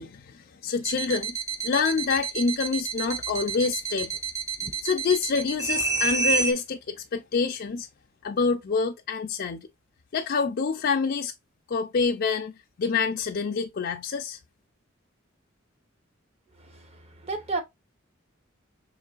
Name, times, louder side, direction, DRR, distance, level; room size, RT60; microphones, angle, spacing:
voice 1, 0.0-1.4 1.6-4.2 4.8-7.9 8.2-9.7 10.1-11.3 11.7-12.5 12.8-14.4, left 5 dB, 50° left, 0.4 m, -27 dB
sound 1, 0.8-6.5, right 5 dB, 15° right, 0.5 m, -29 dB
voice 2, 16.6-17.6, right 3 dB, 30° right, 0.9 m, -33 dB
4.6 x 3.1 x 2.4 m
head